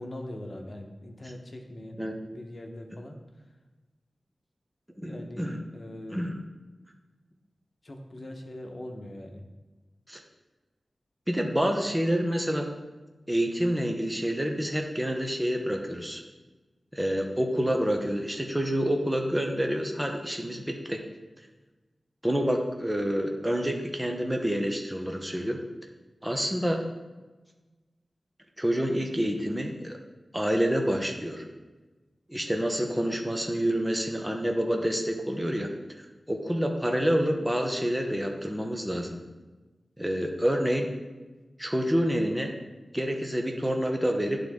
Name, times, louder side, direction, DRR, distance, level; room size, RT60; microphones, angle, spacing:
voice 1, 0.0-3.2 5.0-6.2 7.8-9.4, left 1 dB, 50° left, 2 dB, 1.0 m, -41 dB
voice 2, 5.0-5.6 6.1-6.3 10.1-10.2 11.3-12.7 13.3-16.2 16.9-21.0 22.2-25.6 26.2-26.8 28.6-30.0 30.3-31.4 32.3-35.7 36.3-39.2 40.0-40.9 41.6-42.5 42.9-44.4, equal, 10° right, 3 dB, 0.9 m, -28 dB
11.0 x 3.9 x 3.6 m, 1.2 s
cardioid pair, 55°, 0 cm